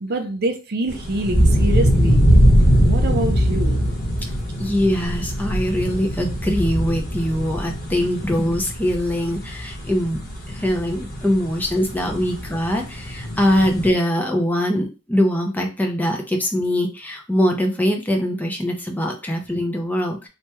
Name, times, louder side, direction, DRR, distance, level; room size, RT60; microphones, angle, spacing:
voice 1, 0.0-2.2 2.5-3.9, right 1 dB, 45° right, 4 dB, 0.5 m, -26 dB
sound 1, 0.9-13.9, equal, 45° left, 0.9 m, -21 dB
voice 2, 4.6-10.2 10.5-20.3, equal, 10° left, 2 dB, 0.5 m, -22 dB
3.3 x 2.2 x 2.9 m, 0.31 s
head